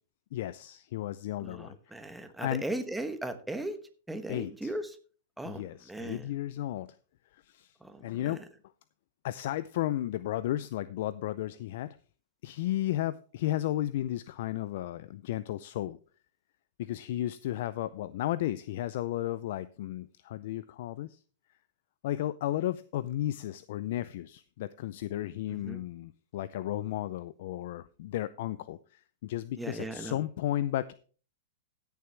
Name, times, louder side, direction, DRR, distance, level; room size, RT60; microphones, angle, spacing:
voice 1, 0.3-1.8 2.4-2.6 4.3-4.8 5.4-6.9 7.3-7.7 8.0-8.4 9.2-12.0 12.4-16.0 16.8-21.2 22.0-30.9, left 13 dB, 60° left, 16 dB, 0.5 m, -34 dB
voice 2, 1.4-3.8 4.1-4.9 5.4-6.3 7.8-8.4 25.5-25.8 29.6-30.2, right 1 dB, 5° right, 8 dB, 1.1 m, -38 dB
16.0 x 7.0 x 3.3 m, 0.39 s
hypercardioid pair, 140°, 0 cm